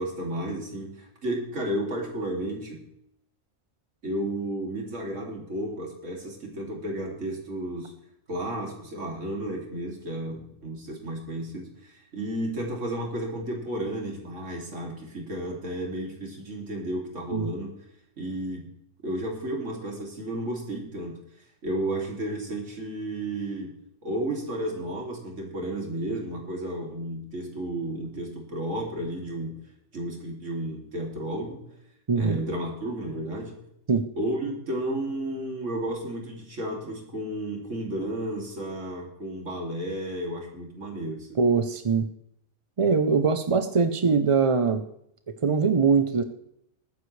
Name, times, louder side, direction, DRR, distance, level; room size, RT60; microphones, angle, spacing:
voice 1, 0.0-2.8 4.0-7.9 8.3-17.8 18.2-18.7 19.0-21.2 21.6-29.6 29.9-31.6 32.2-33.6 34.2-41.4, right 1 dB, 60° right, 0 dB, 3.0 m, -32 dB
voice 2, 32.1-32.4 33.9-34.0 41.4-42.1 42.8-44.8 45.4-46.2, right 5 dB, 45° right, 9 dB, 0.4 m, -22 dB
20.0 x 9.6 x 3.2 m, 0.74 s
omnidirectional pair, 1.4 m